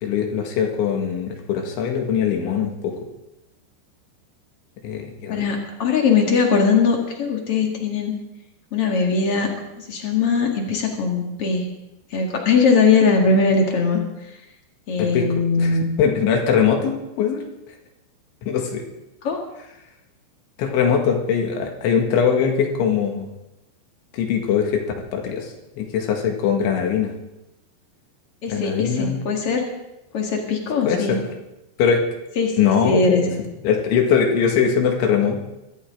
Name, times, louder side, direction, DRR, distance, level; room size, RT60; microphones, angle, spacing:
voice 1, 0.0-3.0 4.8-5.4 15.0-15.3 15.6-17.4 18.4-18.8 20.6-23.3 24.1-24.8 25.1-27.1 28.5-29.2 30.9-31.2 31.8-32.0 32.6-33.3 33.6-35.4, left 7 dB, 80° left, 3 dB, 4.2 m, -21 dB
voice 2, 5.3-8.1 8.7-9.5 9.8-11.6 12.1-14.0 14.9-15.8 19.2-19.4 28.4-29.7 30.1-31.2 32.4-33.4, left 4 dB, 45° left, 1 dB, 2.0 m, -20 dB
22.0 x 14.0 x 3.8 m, 0.93 s
omnidirectional pair, 5.4 m